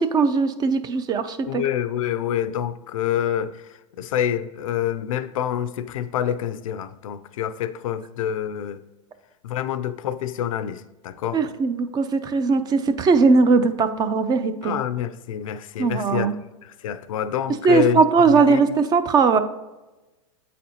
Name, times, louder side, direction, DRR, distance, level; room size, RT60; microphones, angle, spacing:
voice 1, 0.0-1.6 11.3-14.8 15.8-16.3 17.6-19.4, right 4 dB, 25° right, 0.4 m, -19 dB
voice 2, 1.5-3.7 4.0-8.8 9.4-11.4 14.6-16.3 16.6-18.6, left 10 dB, 80° left, 0.4 m, -27 dB
8.3 x 4.1 x 2.8 m
hypercardioid pair, 115°, 17 cm